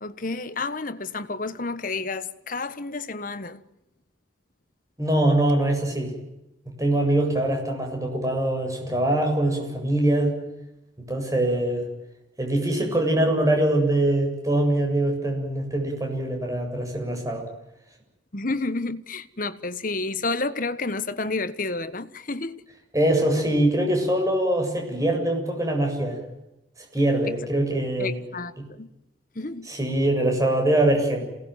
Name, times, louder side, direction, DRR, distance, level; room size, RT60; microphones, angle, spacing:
voice 1, 0.0-3.6 18.3-22.6 27.3-27.4 28.0-28.9 29.3-29.7, left 3 dB, 45° left, 1.3 m, -30 dB
voice 2, 5.0-6.1 6.8-10.4 11.0-11.9 12.4-17.4 22.9-26.2 26.9-28.2 28.6-28.7 29.7-31.3, right 1 dB, 15° right, 7.7 m, -23 dB
28.0 x 19.5 x 9.3 m
head